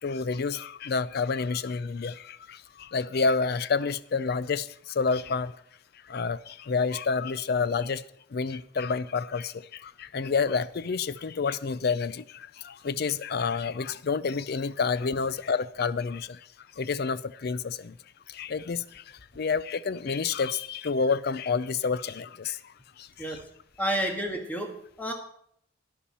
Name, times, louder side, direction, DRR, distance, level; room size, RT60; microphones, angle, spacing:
voice 1, 0.0-4.7 5.0-5.5 6.1-8.0 8.3-9.5 9.8-12.2 12.6-16.4 16.8-17.9 18.3-18.8 19.4-22.6, left 5 dB, 50° left, 0.4 m, -28 dB
voice 2, 23.8-25.1, right 1 dB, 10° left, 1.5 m, -30 dB
12.5 x 10.5 x 4.2 m
head